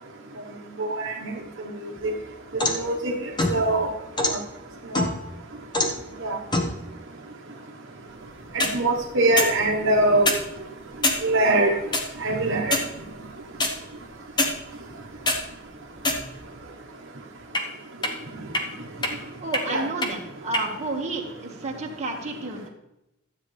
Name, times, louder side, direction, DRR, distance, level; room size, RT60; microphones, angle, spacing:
voice 1, 0.8-1.3 2.0-2.1 2.5-3.9 4.3-4.4 4.9-5.1 6.2-6.4 8.5-10.3 11.2-11.7 12.2-12.8 19.7-19.9, right 2 dB, 60° right, 0 dB, 1.1 m, -23 dB
sound 1, 2.0-2.9 3.4-4.4 4.9-5.4 5.7-6.0 6.5-6.7 8.4-8.8 9.4-9.5 10.1-10.4 11.0-11.2 11.9-12.0 12.7-12.9 13.6-13.7 14.4-14.5 15.0-15.4 16.0-16.5 17.5-17.6 18.0-18.1 18.5-18.6 19.0-19.1 19.5-19.6 20.0-20.1 20.5-20.6, left 2 dB, 20° left, 1.1 m, -24 dB
voice 2, 19.4-22.7, right 2 dB, 30° right, 0 dB, 1.7 m, -31 dB
12.5 x 8.3 x 3.3 m, 0.89 s
head